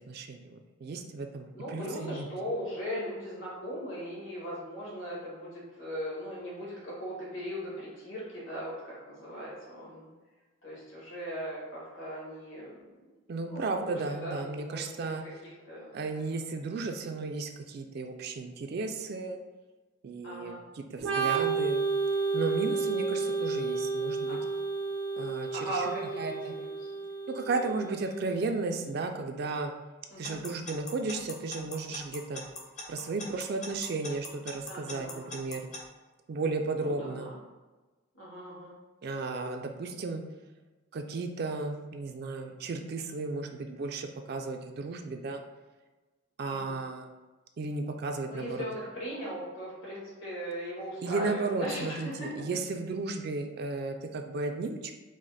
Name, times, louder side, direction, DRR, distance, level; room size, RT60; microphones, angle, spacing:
voice 1, 0.1-2.3 13.3-15.4 15.9-19.4 20.0-21.8 22.3-24.4 25.2-26.5 27.3-29.7 30.2-32.4 32.9-35.7 36.3-37.3 39.0-40.2 40.9-45.4 46.4-47.1 47.6-48.6 51.0-54.9, right 3 dB, 50° right, 4 dB, 0.3 m, -34 dB
voice 2, 1.5-10.1 10.6-12.8 13.5-15.1 15.6-16.6 20.2-20.6 24.3-24.5 25.5-26.9 30.1-30.4 34.7-35.3 36.8-37.3 38.1-38.7 46.5-46.8 48.3-52.3, equal, 70° left, -6 dB, 1.5 m, -39 dB
Organ, 21.0-28.5, right 4 dB, 85° right, 0.7 m, -31 dB
Alarm / Clock, 30.2-35.8, left 2 dB, 35° left, 0.6 m, -40 dB
4.8 x 2.0 x 4.1 m, 1.2 s
head